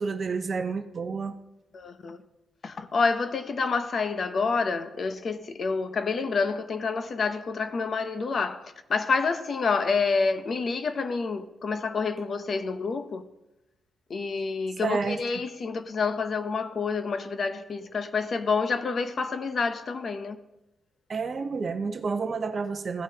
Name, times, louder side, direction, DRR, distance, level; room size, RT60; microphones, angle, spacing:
voice 1, 0.0-1.4 14.8-15.2 21.1-23.0, right 4 dB, 35° right, 0.7 m, -29 dB
voice 2, 1.7-2.2 2.6-13.3 14.1-20.4, left 4 dB, 40° left, 0.7 m, -28 dB
16.0 x 8.7 x 2.9 m
cardioid pair, 140°, 0 cm